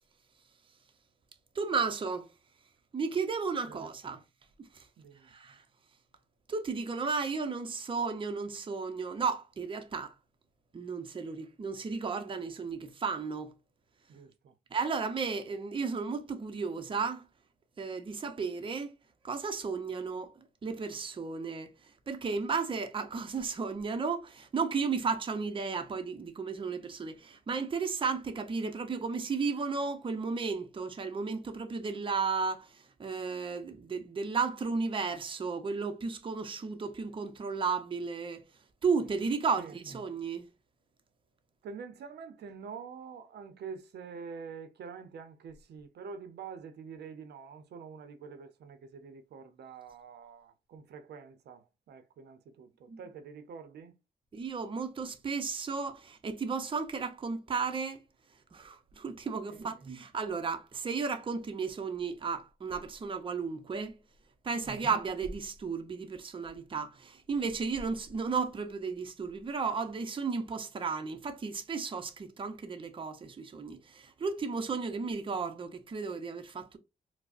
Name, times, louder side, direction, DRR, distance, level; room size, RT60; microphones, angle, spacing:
voice 1, 1.6-2.3 2.9-4.2 4.7-4.9 5.3-5.6 6.5-10.1 10.7-13.5 14.7-17.3 17.8-18.9 19.2-20.3 20.6-21.7 22.1-38.4 38.8-40.5 52.9-53.0 54.3-58.0 58.5-64.0 64.4-76.8, right 5 dB, 30° right, 0.5 m, -34 dB
voice 2, 3.6-4.2 5.0-5.3 14.1-14.5 39.6-39.7 41.6-53.9 59.4-59.8 64.7-64.8, right 6 dB, 80° right, 0.5 m, -46 dB
4.6 x 2.0 x 2.4 m
cardioid pair, 105°, 17 cm